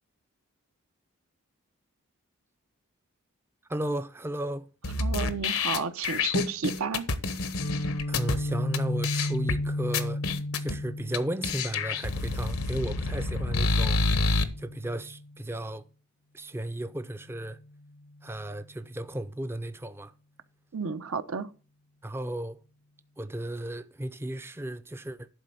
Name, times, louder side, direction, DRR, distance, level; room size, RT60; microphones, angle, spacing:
voice 1, 3.7-4.7 8.1-10.2 10.6-14.0 14.6-15.8 16.3-17.6 18.2-20.1 22.0-22.6 23.2-25.3, right 1 dB, 10° right, 0.4 m, -34 dB
sound 1, 4.8-8.4 8.7-8.8 9.0-9.6 9.9-10.7 11.1-11.2 11.4-14.4, left 3 dB, 85° left, 1.1 m, -28 dB
voice 2, 5.0-7.1 20.7-21.5, right 4 dB, 80° right, 0.7 m, -32 dB
Guitar, 7.6-15.4, left 1 dB, 70° left, 0.6 m, -34 dB
11.0 x 4.2 x 6.7 m
head